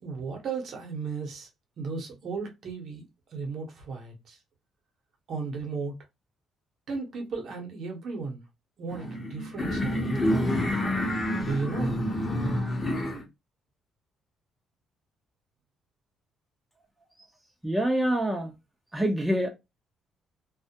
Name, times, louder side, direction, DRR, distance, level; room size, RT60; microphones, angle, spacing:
voice 1, 0.0-1.5 1.8-4.4 5.3-5.9 6.9-8.4 8.8-10.2 11.4-12.1, right 4 dB, 60° right, 0.8 m, -35 dB
sound 1, 8.9-13.2, left 1 dB, 25° left, 0.8 m, -28 dB
voice 2, 17.6-18.5 18.9-19.5, right 1 dB, 5° right, 0.5 m, -25 dB
2.2 x 2.0 x 2.7 m
cardioid pair, 90°, 0 cm